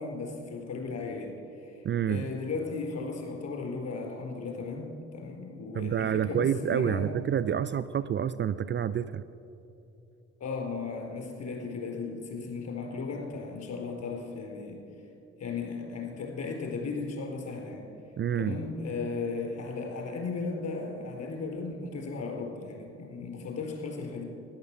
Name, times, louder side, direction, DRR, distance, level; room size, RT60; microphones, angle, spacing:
voice 1, 0.0-7.1 10.4-14.8 15.4-17.8 18.4-24.2, left 4 dB, 50° left, 0 dB, 4.3 m, -36 dB
voice 2, 1.8-2.3 5.7-9.2 18.2-18.6, right 9 dB, 35° right, 14 dB, 0.4 m, -28 dB
13.0 x 10.5 x 7.5 m, 2.9 s
hypercardioid pair, 50°, 34 cm